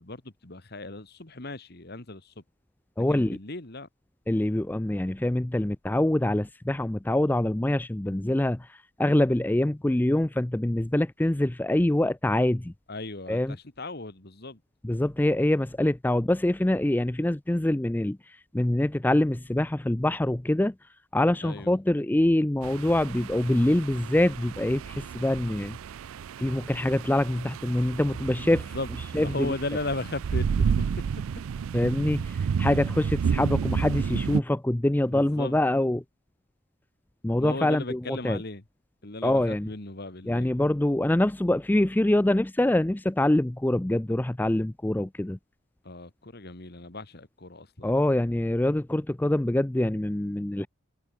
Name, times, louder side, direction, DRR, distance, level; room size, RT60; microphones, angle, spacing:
voice 1, 0.0-2.4 3.1-3.9 12.9-14.6 21.4-21.8 28.4-30.9 35.1-35.6 37.4-38.6 39.0-40.5 45.8-47.9, left 2 dB, 50° left, 1.9 m, -37 dB
voice 2, 3.0-3.4 4.3-12.7 13.3-13.6 14.8-20.7 21.1-25.8 26.4-28.6 29.1-29.5 31.7-36.0 37.2-38.0 38.2-38.4 39.2-39.7 40.3-45.4 47.8-50.7, left 1 dB, 10° left, 0.4 m, -25 dB
sound 1, 22.6-34.4, right 6 dB, 80° right, 0.4 m, -31 dB
head